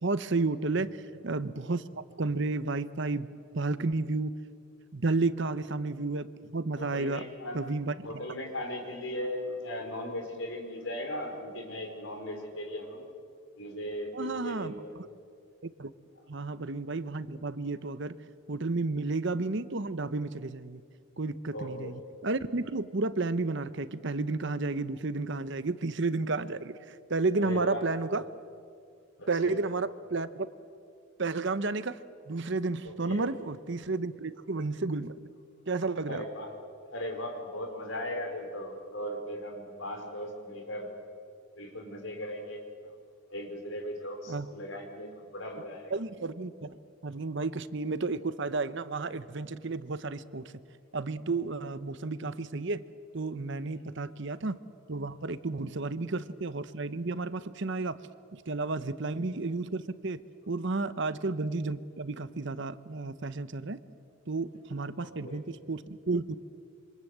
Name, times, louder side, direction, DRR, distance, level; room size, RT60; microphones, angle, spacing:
voice 1, 0.0-3.3 3.5-4.3 4.9-7.2 7.5-8.3 14.1-14.8 15.6-15.9 16.3-18.2 18.5-20.8 21.2-28.2 29.3-30.5 31.2-32.0 32.3-35.2 35.7-36.2 44.3-44.5 45.9-50.5 50.9-52.8 53.1-54.6 54.9-58.0 58.3-60.2 60.5-63.8 64.3-66.3, right 3 dB, 55° right, 14 dB, 0.9 m, -32 dB
voice 2, 6.8-7.7 8.0-13.0 13.5-14.9 21.5-21.9 27.4-27.8 29.2-29.6 32.8-33.2 36.1-36.5 36.9-40.9 41.6-42.6 43.3-45.9 53.8-54.0 65.0-65.4, left 1 dB, 60° left, 3 dB, 4.8 m, -38 dB
27.0 x 25.5 x 8.0 m, 2.2 s
head